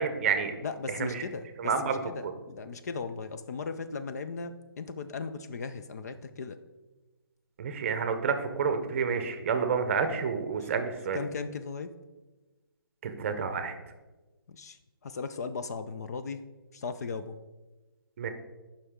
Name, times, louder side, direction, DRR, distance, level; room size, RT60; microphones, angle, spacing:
voice 1, 0.0-0.5 0.9-1.2 1.6-2.3 7.6-11.2 13.0-13.8 18.2-18.3, right 6 dB, 35° right, 8 dB, 0.7 m, -29 dB
voice 2, 0.6-6.6 10.1-10.2 11.1-11.9 14.5-16.4 16.7-17.4, left 4 dB, 45° left, 10 dB, 0.4 m, -37 dB
9.7 x 5.6 x 3.6 m, 1.2 s
hypercardioid pair, 165°, 13 cm